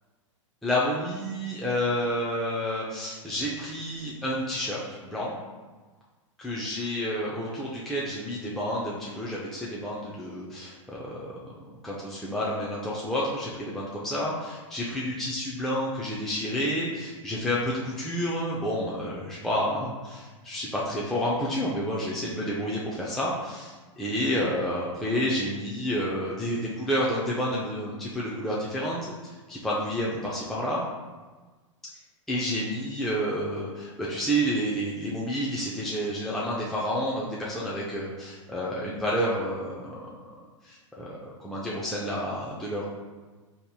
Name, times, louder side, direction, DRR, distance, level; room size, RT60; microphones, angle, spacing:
voice 1, 0.6-5.5 6.4-11.5 11.8-30.9 32.3-40.1 40.6-42.8, equal, ahead, -6 dB, 0.5 m, -30 dB
5.2 x 2.9 x 2.3 m, 1.3 s
hypercardioid pair, 110°, 16 cm